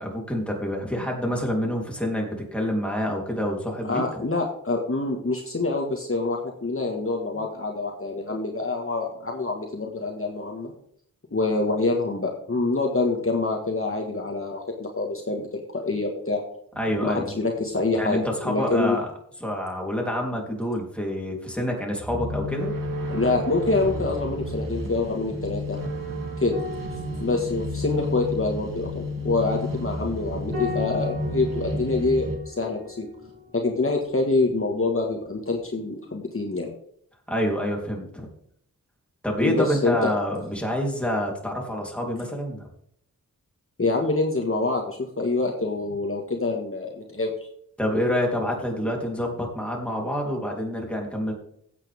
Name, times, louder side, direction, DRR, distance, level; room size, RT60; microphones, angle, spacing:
voice 1, 0.0-4.0 16.8-17.3 17.9-19.1 19.4-22.7 37.3-38.3 39.2-42.7 47.8-51.3, equal, 5° left, -1 dB, 3.5 m, -27 dB
voice 2, 3.8-10.7 11.3-15.5 15.7-16.4 17.0-18.2 18.4-19.0 23.1-25.8 26.4-26.6 27.2-33.1 33.5-36.7 39.4-40.1 43.8-47.5, left 3 dB, 40° left, 1 dB, 1.8 m, -26 dB
sound 1, 16.8-18.1 22.0-32.4, equal, 80° right, 2.8 m, -31 dB
sound 2, 26.5-35.2 35.5-35.7, left 3 dB, 45° right, 3.9 m, -40 dB
16.0 x 8.5 x 3.6 m, 0.67 s
wide cardioid pair, 90°, 33 cm